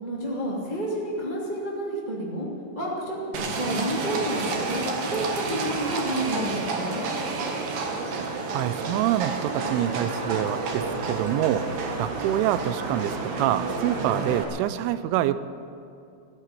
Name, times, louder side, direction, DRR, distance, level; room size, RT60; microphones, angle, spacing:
voice 1, 0.0-2.5 2.7-7.0, right 1 dB, 25° right, -5 dB, 0.8 m, -30 dB
Livestock farm animals working animals, 3.3-14.4, right 3 dB, 60° right, 2.5 m, -30 dB
voice 2, 8.5-11.7 12.0-15.4, right 13 dB, 90° right, 14 dB, 3.1 m, -26 dB
15.0 x 9.8 x 9.2 m, 2.5 s
omnidirectional pair, 5.4 m